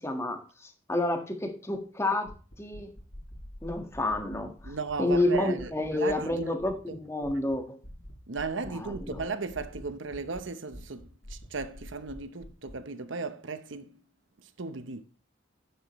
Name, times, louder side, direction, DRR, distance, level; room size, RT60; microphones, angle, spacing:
voice 1, 0.0-2.3 2.6-2.9 3.6-7.8 8.7-9.2, left 2 dB, 15° left, 1.5 m, -30 dB
sound 1, 2.3-7.0 7.2-7.6 7.8-10.4 10.7-12.7, equal, 75° left, 5.9 m, -45 dB
voice 2, 4.7-6.5 6.9-7.0 8.3-13.9 14.6-15.0, right 4 dB, 80° right, 0.9 m, -36 dB
10.5 x 10.0 x 3.1 m
head